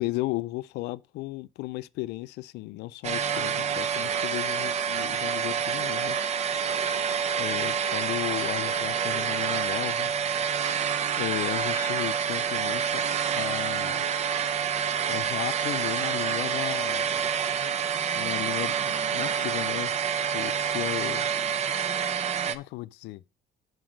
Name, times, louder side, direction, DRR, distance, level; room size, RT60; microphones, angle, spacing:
voice 1, 0.0-6.6 7.4-10.1 11.2-13.0 13.3-14.0 15.1-17.4 18.1-21.3 22.5-23.2, left 18 dB, 85° left, 0.4 m, -35 dB
sound 1, 3.0-22.6, right 7 dB, 40° right, 0.5 m, -28 dB
5.9 x 4.8 x 6.3 m
cardioid pair, 110°, 17 cm